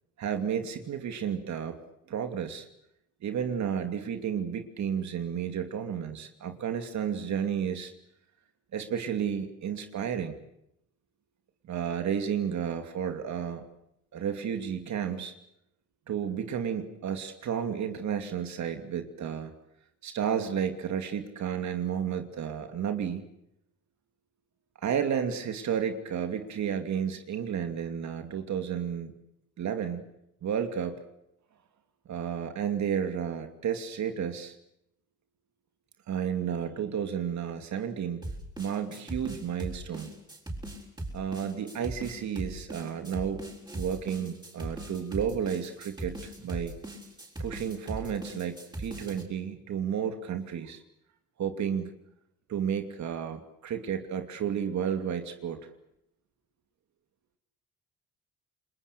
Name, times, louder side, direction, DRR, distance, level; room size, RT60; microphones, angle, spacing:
voice 1, 0.2-1.8 2.1-2.7 3.2-7.9 8.7-10.4 11.6-13.6 14.1-15.3 16.1-19.5 20.0-23.2 24.8-29.1 29.6-30.1 30.4-31.0 32.1-34.5 36.1-38.2 38.6-40.1 41.1-43.4 43.7-46.7 47.4-50.8 51.4-51.9 52.5-55.6, right 8 dB, 65° right, 6 dB, 2.7 m, -32 dB
sound 1, 38.2-49.2, right 1 dB, 15° right, 6.8 m, -39 dB
30.0 x 21.5 x 6.8 m, 0.79 s
cardioid pair, 90°, 30 cm